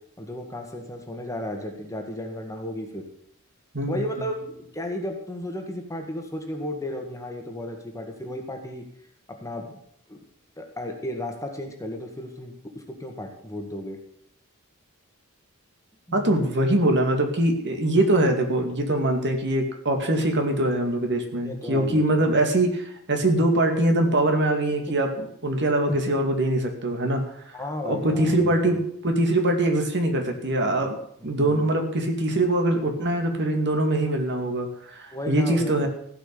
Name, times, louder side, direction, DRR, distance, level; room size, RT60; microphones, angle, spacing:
voice 1, 0.2-3.0 3.9-8.8 9.3-9.7 10.1-10.2 10.6-14.0 16.1-16.4 21.4-22.3 24.9-25.0 25.9-26.0 27.5-28.8 31.2-31.7 35.1-35.9, left 1 dB, 15° left, 3 dB, 1.8 m, -34 dB
voice 2, 16.1-27.2 27.8-31.0 31.2-35.9, right 1 dB, 55° right, 4 dB, 2.4 m, -23 dB
15.5 x 6.1 x 8.5 m, 0.69 s
head